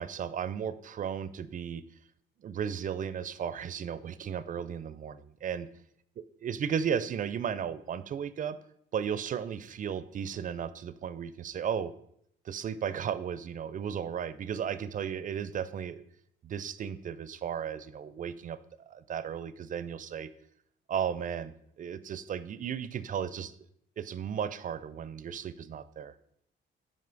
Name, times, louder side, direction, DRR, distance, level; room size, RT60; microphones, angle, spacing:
voice 1, 0.0-1.8 2.4-5.7 6.4-8.6 8.9-11.9 12.5-16.0 16.4-20.3 20.9-23.5 24.0-26.1, right 8 dB, 40° right, 14 dB, 0.4 m, -35 dB
5.6 x 5.1 x 3.8 m, 0.71 s
cardioid pair, 90°, 20 cm